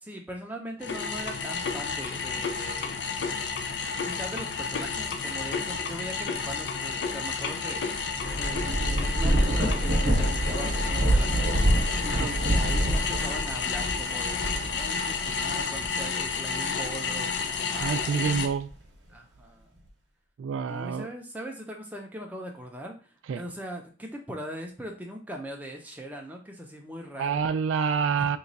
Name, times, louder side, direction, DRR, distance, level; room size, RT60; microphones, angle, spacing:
voice 1, 0.0-3.0 4.0-8.7 9.0-18.4 19.1-19.7 20.7-27.4 28.1-28.3, right 1 dB, 10° right, 0 dB, 0.5 m, -40 dB
sound 1, 0.8-18.5, left 5 dB, 60° left, 0.4 m, -31 dB
Thunder / Rain, 7.9-16.8 17.4-18.7, right 1 dB, 65° right, 0.9 m, -27 dB
voice 2, 17.8-18.7 20.4-21.1 23.3-23.4 27.2-28.4, right 6 dB, 90° right, 11 dB, 0.3 m, -27 dB
3.0 x 2.3 x 3.9 m, 0.37 s
head